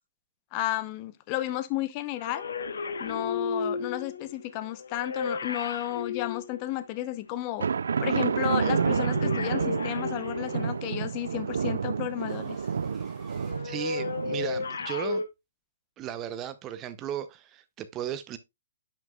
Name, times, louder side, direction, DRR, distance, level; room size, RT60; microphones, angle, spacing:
voice 1, 0.5-2.5 3.0-7.7 8.0-12.6, left 14 dB, 30° left, 0.7 m, -32 dB
sound 1, 2.2-7.2 8.4-11.0 13.4-15.2, left 4 dB, 75° left, 1.0 m, -34 dB
sound 2, 7.6-14.8, right 6 dB, 75° right, 0.4 m, -29 dB
sound 3, 11.2-14.4, equal, ahead, 2.0 m, -58 dB
voice 2, 13.6-15.2 16.0-18.4, right 10 dB, 20° right, 0.7 m, -35 dB
10.0 x 6.3 x 2.3 m
hypercardioid pair, 150°, 0 cm